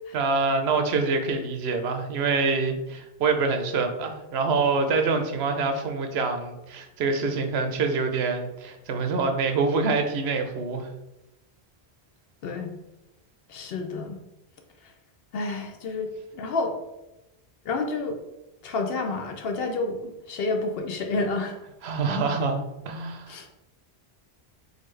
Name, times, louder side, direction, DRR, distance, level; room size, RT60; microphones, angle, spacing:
voice 1, 0.1-10.9 21.8-23.3, right 4 dB, 75° right, 5 dB, 0.9 m, -26 dB
voice 2, 12.4-12.7 13.5-14.2 15.3-16.8 17.6-18.2 18.6-20.0 20.3-21.6 23.3-23.5, left 3 dB, 70° left, 5 dB, 0.8 m, -29 dB
4.1 x 3.5 x 3.2 m, 0.95 s
omnidirectional pair, 1.1 m